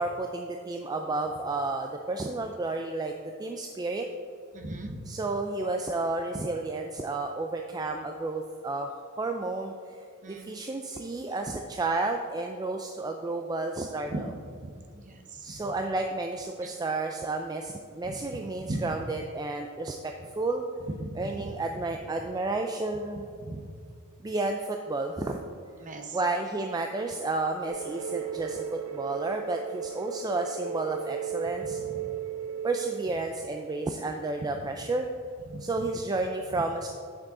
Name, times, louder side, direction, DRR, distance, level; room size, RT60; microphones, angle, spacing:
voice 1, 0.0-3.1 3.4-4.1 5.1-14.1 15.4-20.7 21.2-23.2 24.2-25.4 26.1-31.8 32.6-35.1 35.6-36.9, right 2 dB, 15° right, 3 dB, 0.3 m, -31 dB
voice 2, 4.5-5.2 10.2-10.5 14.1-14.2 14.6-15.7 16.6-16.8 18.0-18.2 18.6-18.8 20.8-21.6 23.4-23.7 25.8-26.2 31.6-32.1 34.6-34.7 35.5-35.9 36.5-36.6, right 1 dB, 35° right, 4 dB, 0.8 m, -38 dB
sound 1, 27.7-33.1, right 8 dB, 70° right, 0.6 m, -36 dB
9.1 x 6.0 x 3.7 m, 2.2 s
head